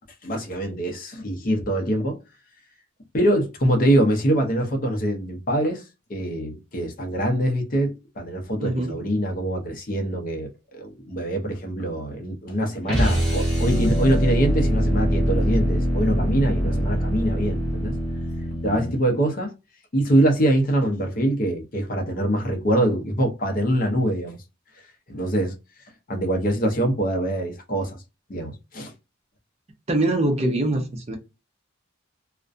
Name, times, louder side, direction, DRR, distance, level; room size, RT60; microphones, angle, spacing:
voice 1, 0.2-2.2 3.1-5.8 6.1-17.9 18.6-19.5 19.9-24.4 25.1-25.5 26.1-28.0 28.3-28.9, right 1 dB, 45° left, 0.6 m, -24 dB
voice 2, 8.6-9.0 29.9-31.2, right 1 dB, 30° right, 0.5 m, -23 dB
sound 1, 12.8-19.0, equal, 5° left, 0.7 m, -23 dB
2.4 x 2.1 x 2.5 m
head